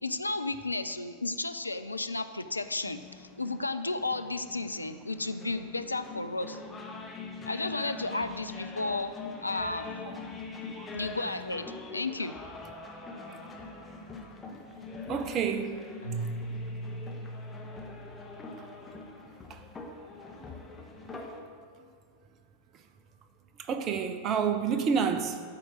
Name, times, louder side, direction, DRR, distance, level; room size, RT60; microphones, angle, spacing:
voice 1, 0.0-6.6 7.5-9.2 9.4-10.0 10.9-12.4, left 2 dB, 85° left, 0.4 m, -33 dB
sound 1, 2.6-21.4, left 3 dB, 15° left, 1.2 m, -43 dB
voice 2, 15.1-15.8 18.6-18.7 19.5-19.6 20.4-20.8 22.7-22.8 23.6-25.4, right 6 dB, 30° right, 0.7 m, -30 dB
Keyboard (musical), 16.0-19.1, right 2 dB, 75° right, 1.9 m, -39 dB
12.0 x 4.5 x 6.3 m
figure-of-eight pair, 90°, 0 cm